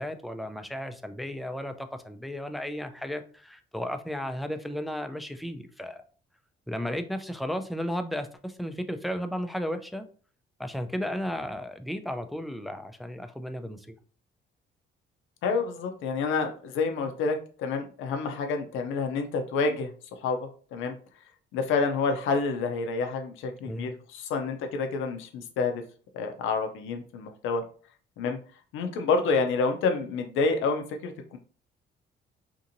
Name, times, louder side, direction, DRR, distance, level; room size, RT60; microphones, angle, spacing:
voice 1, 0.0-6.0 6.7-10.0 10.6-13.9 23.7-23.9, equal, ahead, 7 dB, 0.3 m, -34 dB
voice 2, 15.4-19.9 20.2-20.4 20.7-20.9 21.5-25.8 26.1-27.6 28.2-28.4 28.7-31.4, left 4 dB, 90° left, 5 dB, 0.5 m, -28 dB
2.8 x 2.6 x 2.5 m, 0.42 s
cardioid pair, 90°, 20 cm